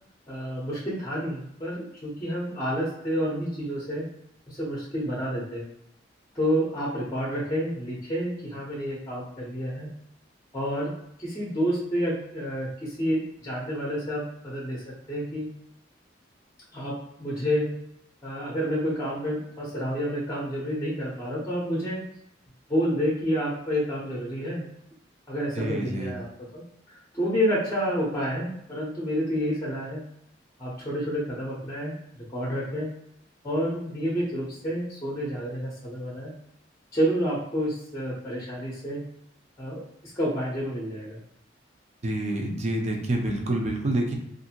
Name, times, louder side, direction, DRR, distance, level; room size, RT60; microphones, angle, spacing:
voice 1, 0.3-4.1 4.5-5.7 6.3-9.9 10.5-10.9 11.2-15.5 16.7-17.7 18.2-22.0 22.7-24.6 25.3-26.2 26.5-26.6 27.1-30.0 30.6-31.9 32.3-32.9 33.4-36.3 36.9-39.0 39.6-39.8 40.1-41.2, equal, 15° left, -5 dB, 0.7 m, -29 dB
voice 2, 25.6-26.1 42.0-44.1, right 1 dB, 35° right, 1 dB, 0.5 m, -27 dB
2.6 x 2.5 x 2.8 m, 0.75 s
head